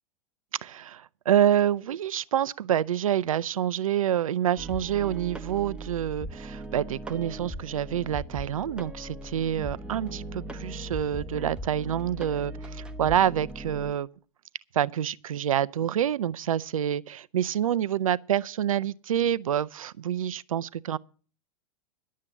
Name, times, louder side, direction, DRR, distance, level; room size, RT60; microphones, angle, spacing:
voice 1, 0.6-14.1 14.7-21.0, right 10 dB, 75° right, 0.5 m, -27 dB
sound 1, 4.6-13.9, right 1 dB, 5° right, 1.1 m, -39 dB
11.5 x 7.4 x 8.0 m
figure-of-eight pair, 100°, 18 cm